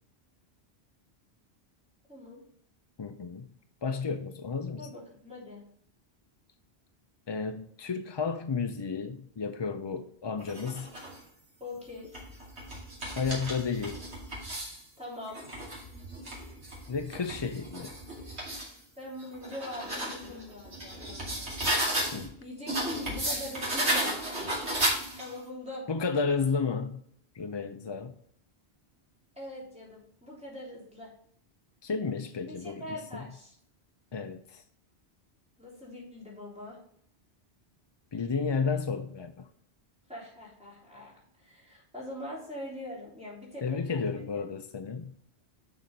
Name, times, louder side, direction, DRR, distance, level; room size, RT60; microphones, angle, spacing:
voice 1, 2.1-2.4 4.8-5.6 11.6-12.2 15.0-15.4 19.0-21.5 22.4-24.2 25.2-25.9 29.3-31.1 32.4-33.5 35.6-36.8 40.1-44.2, left 1 dB, 5° right, -4 dB, 3.2 m, -42 dB
voice 2, 3.0-3.5 3.8-4.9 7.3-10.9 13.2-14.0 16.9-17.9 22.1-22.4 25.9-27.0 27.3-28.1 31.8-33.3 34.1-34.6 38.1-39.5 43.6-45.1, left 5 dB, 40° left, 7 dB, 0.4 m, -32 dB
sound 1, 10.4-11.2 11.9-14.8 15.3-18.7 19.2-22.3 22.7-25.4, right 1 dB, 90° right, 3.0 m, -34 dB
6.5 x 5.8 x 5.2 m, 0.65 s
omnidirectional pair, 1.1 m